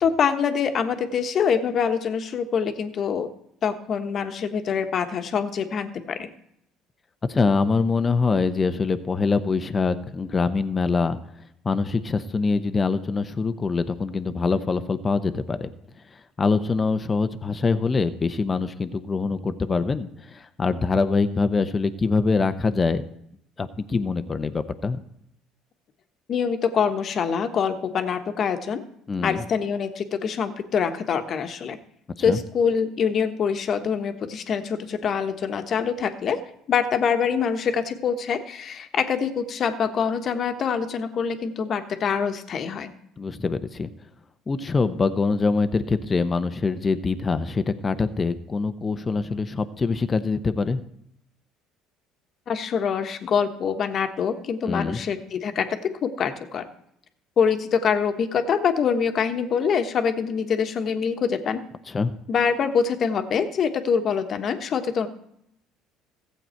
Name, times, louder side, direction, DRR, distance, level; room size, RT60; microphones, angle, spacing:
voice 1, 0.0-3.3 3.6-6.3 26.3-28.8 29.2-31.8 32.2-36.4 36.7-42.9 52.5-55.6 56.0-56.6 57.4-61.6 62.3-65.1, left 6 dB, 50° left, 7 dB, 1.2 m, -25 dB
voice 2, 7.3-11.2 11.6-15.7 16.1-23.0 23.6-25.0 29.1-29.4 32.3-32.4 43.2-43.9 44.5-50.8 54.7-55.0 61.9-62.1, left 4 dB, 30° left, 10 dB, 0.8 m, -24 dB
15.0 x 7.9 x 4.5 m, 0.74 s
supercardioid pair, 75°, 0 cm